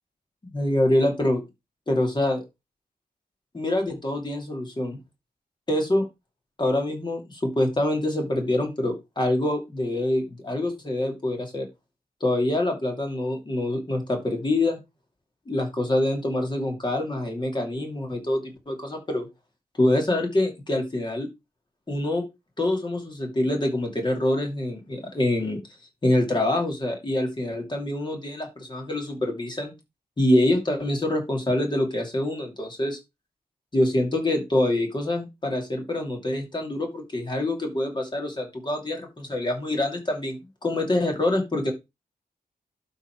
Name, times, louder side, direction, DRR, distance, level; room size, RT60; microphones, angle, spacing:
voice 1, 0.5-1.4 1.9-2.4 3.5-5.0 5.7-6.0 6.6-11.7 12.2-14.8 15.5-19.3 19.8-21.3 21.9-22.2 22.6-25.6 26.0-29.7 30.2-33.0 33.7-41.7, left 1 dB, 30° left, 3 dB, 2.6 m, -25 dB
12.0 x 4.1 x 4.6 m, 0.23 s
wide cardioid pair, 165°, 16 cm